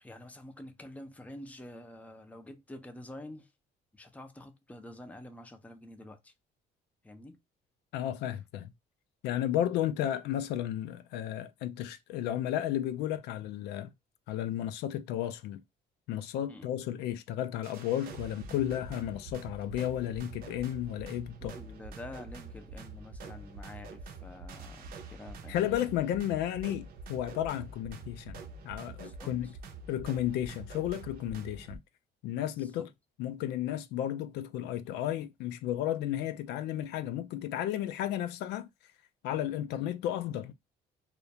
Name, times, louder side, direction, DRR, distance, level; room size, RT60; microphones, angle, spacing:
voice 1, 0.0-3.5 3.9-6.3 7.0-7.4 16.5-16.7 21.4-25.8 29.0-29.3 32.6-32.9, left 1 dB, 10° left, 0.5 m, -48 dB
voice 2, 7.9-8.7 9.2-13.9 14.3-15.6 16.1-21.5 25.5-29.5 29.9-31.8 32.2-32.9 33.2-38.7 39.2-40.5, left 11 dB, 85° left, 0.4 m, -33 dB
sound 1, 17.6-31.8, right 3 dB, 60° right, 0.7 m, -46 dB
2.4 x 2.1 x 2.7 m
cardioid pair, 110°, 17 cm